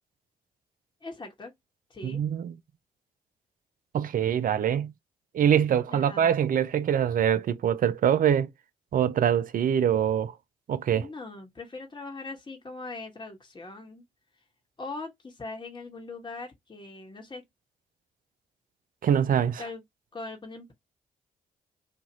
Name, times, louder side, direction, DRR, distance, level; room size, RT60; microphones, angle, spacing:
voice 1, 1.0-1.5 1.9-2.2 5.9-6.3 10.9-14.1 14.8-17.4 19.6-19.8 20.1-20.7, left 3 dB, 25° left, 1.2 m, -40 dB
voice 2, 2.0-2.5 3.9-4.9 5.3-8.5 8.9-10.3 10.7-11.1 19.0-19.6, right 9 dB, 50° right, 0.5 m, -24 dB
2.8 x 2.4 x 2.7 m
hypercardioid pair, 40°, 18 cm